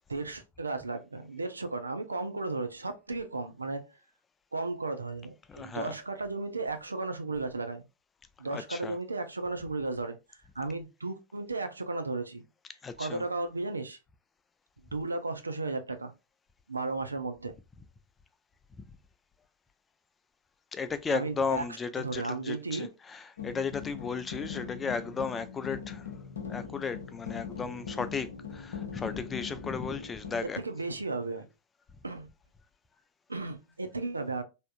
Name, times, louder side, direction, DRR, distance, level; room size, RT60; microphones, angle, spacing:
voice 1, 0.1-3.8 4.5-7.8 8.4-10.2 10.6-12.4 13.0-14.0 14.9-16.1 16.7-17.5 21.1-21.6 22.0-22.9 30.6-31.5 32.0-32.3 33.3-34.4, right 3 dB, 80° right, 0.4 m, -34 dB
voice 2, 5.5-6.0 8.5-9.0 12.8-13.3 20.7-26.1 26.4-30.6, left 5 dB, 20° left, 0.4 m, -35 dB
sound 1, 23.4-30.4, left 6 dB, 65° left, 0.6 m, -40 dB
3.4 x 2.7 x 2.3 m
figure-of-eight pair, 90°, 0 cm